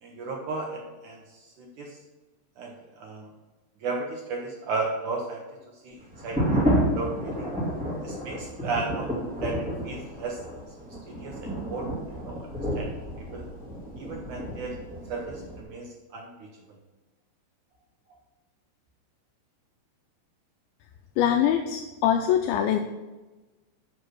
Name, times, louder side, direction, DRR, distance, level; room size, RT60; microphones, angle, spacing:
voice 1, 0.0-2.0 2.6-3.2 3.8-5.4 5.8-6.0 6.2-7.5 8.0-9.1 9.4-10.4 11.1-12.4 12.8-12.9 13.2-13.5 14.0-14.8 15.1-16.3, right 3 dB, 70° right, 0 dB, 1.9 m, -34 dB
sound 1, 6.1-15.6, equal, 5° right, 0.8 m, -30 dB
voice 2, 21.2-22.8, left 9 dB, 80° left, 5 dB, 2.2 m, -23 dB
7.9 x 6.5 x 6.0 m, 1.2 s
omnidirectional pair, 4.6 m